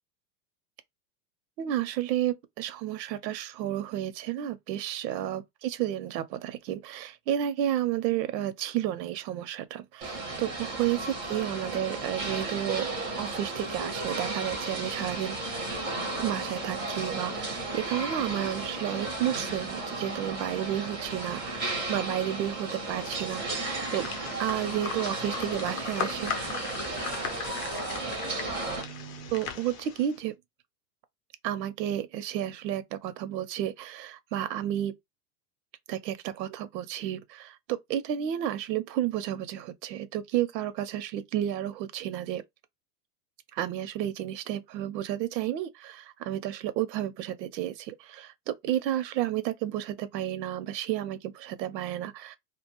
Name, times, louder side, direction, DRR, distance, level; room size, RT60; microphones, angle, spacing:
voice 1, 1.6-12.9 13.2-15.4 16.2-24.1 24.4-26.6 28.7-30.3 31.4-34.9 35.9-42.4 43.5-52.4, right 11 dB, 80° right, 0.7 m, -32 dB
sound 1, 10.0-28.8, right 2 dB, 10° right, 0.4 m, -34 dB
sound 2, 22.9-30.2, left 7 dB, 40° left, 0.6 m, -38 dB
2.4 x 2.2 x 2.9 m
supercardioid pair, 160°, 49 cm